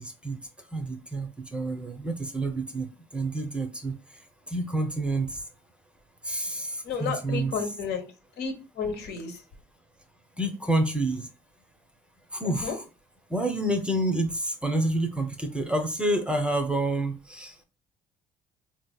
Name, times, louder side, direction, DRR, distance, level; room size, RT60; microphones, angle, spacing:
voice 1, 0.0-4.0 4.5-5.4 6.2-7.5 10.4-11.3 12.3-12.8 13.3-17.6, right 1 dB, 5° right, 0.6 m, -28 dB
voice 2, 6.8-8.1 8.4-9.4 12.4-12.7, left 6 dB, 80° left, 1.0 m, -32 dB
3.8 x 2.8 x 2.2 m
cardioid pair, 110°, 17 cm